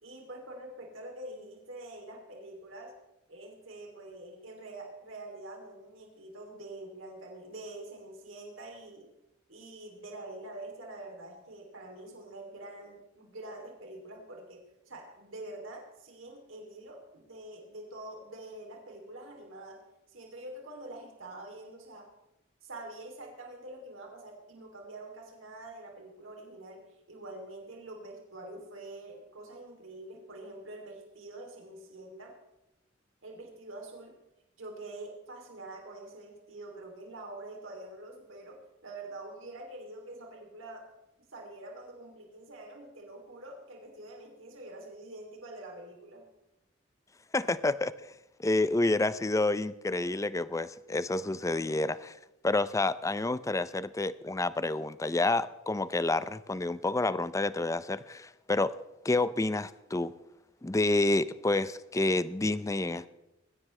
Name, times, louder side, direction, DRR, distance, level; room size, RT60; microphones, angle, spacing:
voice 1, 0.0-3.0 3.3-9.1 9.5-19.8 20.1-22.1 22.6-32.3 33.2-34.2 34.6-40.9 41.3-46.2, right 2 dB, 90° right, 1 dB, 3.0 m, -46 dB
voice 2, 47.3-47.9 48.4-52.1 52.4-58.7 59.0-60.1 60.6-63.1, left 2 dB, 15° left, 16 dB, 0.5 m, -29 dB
21.0 x 16.0 x 3.3 m, 0.93 s
head